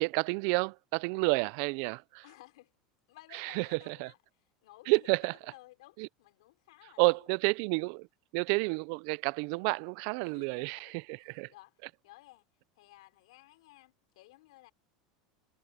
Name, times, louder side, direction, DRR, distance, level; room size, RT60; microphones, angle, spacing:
voice 1, 0.0-2.2 3.3-4.1 4.9-5.3 6.0-6.1 7.0-8.1 8.3-11.5, right 29 dB, 60° right, 0.4 m, -30 dB
voice 2, 2.2-2.7 3.1-4.2 4.6-5.2 5.4-7.3 10.2-12.5 12.8-14.7, left 18 dB, 80° left, 4.4 m, -57 dB
supercardioid pair, 130°, 3 cm